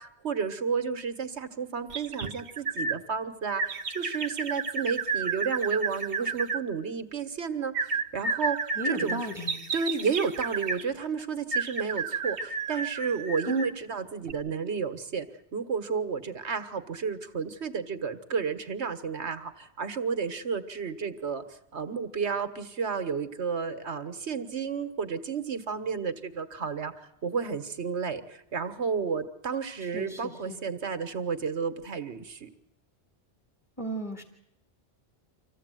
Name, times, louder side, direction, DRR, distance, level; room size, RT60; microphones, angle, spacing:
voice 1, 0.0-9.3 9.7-15.3 15.5-32.5, right 5 dB, 80° right, 9 dB, 1.7 m, -32 dB
sound 1, 1.9-3.0 3.6-6.6 7.7-10.8 11.5-13.8 14.2-14.3, right 4 dB, 60° right, 1.2 m, -32 dB
voice 2, 8.8-9.6 13.5-13.7 29.8-30.6 33.8-34.2, right 1 dB, 15° left, 4 dB, 2.1 m, -34 dB
25.5 x 16.0 x 9.2 m, 0.80 s
omnidirectional pair, 1.1 m